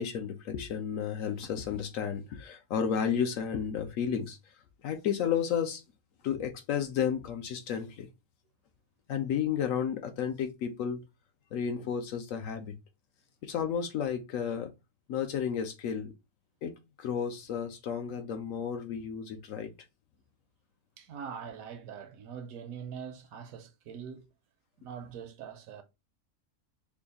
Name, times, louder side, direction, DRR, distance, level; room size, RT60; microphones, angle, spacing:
voice 1, 0.0-4.4 4.8-5.8 6.2-8.1 9.1-11.0 11.5-12.7 13.4-14.7 15.1-16.1 16.6-19.7, left 8 dB, 70° left, 0.9 m, -32 dB
voice 2, 21.0-24.3 24.8-25.8, right 7 dB, 75° right, 1.0 m, -43 dB
3.4 x 2.3 x 3.7 m
omnidirectional pair, 1.6 m